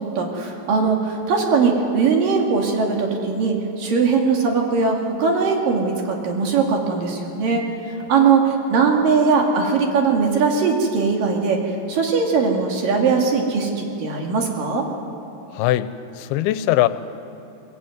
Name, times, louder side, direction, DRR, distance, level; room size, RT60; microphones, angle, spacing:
voice 1, 0.0-7.6 8.1-11.6 11.9-14.8, right 5 dB, 65° right, 1 dB, 3.9 m, -20 dB
voice 2, 15.5-15.9 16.2-16.9, left 14 dB, 90° left, 13 dB, 2.7 m, -20 dB
23.0 x 21.0 x 9.4 m, 2.8 s
omnidirectional pair, 4.4 m